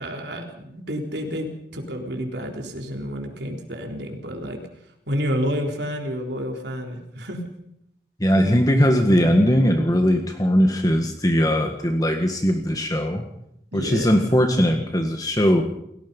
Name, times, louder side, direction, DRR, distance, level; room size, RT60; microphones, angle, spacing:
voice 1, 0.0-4.6 5.1-7.4 13.7-14.3, equal, 75° right, 3 dB, 3.9 m, -29 dB
voice 2, 8.2-13.2 13.7-15.6, equal, 20° left, 4 dB, 1.8 m, -19 dB
30.0 x 17.5 x 5.6 m, 0.77 s
head